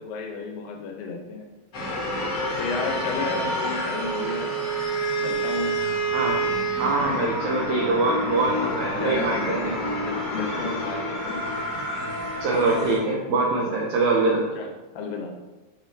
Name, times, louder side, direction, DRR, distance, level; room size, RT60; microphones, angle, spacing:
voice 1, 0.0-1.5 2.6-4.6 5.2-5.8 7.0-7.3 8.3-8.7 9.0-11.4 14.5-15.4, left 4 dB, 80° left, 2 dB, 2.5 m, -33 dB
sound 1, 1.7-13.0, left 1 dB, 60° left, 1.1 m, -30 dB
Wind instrument woodwind instrument, 3.9-7.1, right 5 dB, 45° right, 2.8 m, -27 dB
voice 2, 6.8-9.7 12.4-14.4, right 3 dB, 85° right, -2 dB, 1.7 m, -23 dB
6.3 x 6.1 x 2.6 m, 1.1 s
omnidirectional pair, 4.1 m